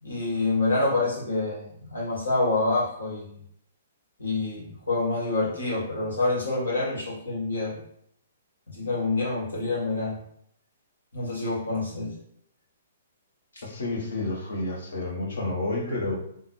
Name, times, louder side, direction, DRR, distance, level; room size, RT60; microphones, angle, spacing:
voice 1, 0.0-3.3 4.2-7.8 8.7-10.2 11.1-12.1 13.5-13.6, left 2 dB, 85° left, -4 dB, 1.4 m, -27 dB
voice 2, 13.6-16.2, left 2 dB, 70° left, -1 dB, 1.1 m, -30 dB
3.8 x 2.2 x 3.0 m, 0.70 s
hypercardioid pair, 125°, 0 cm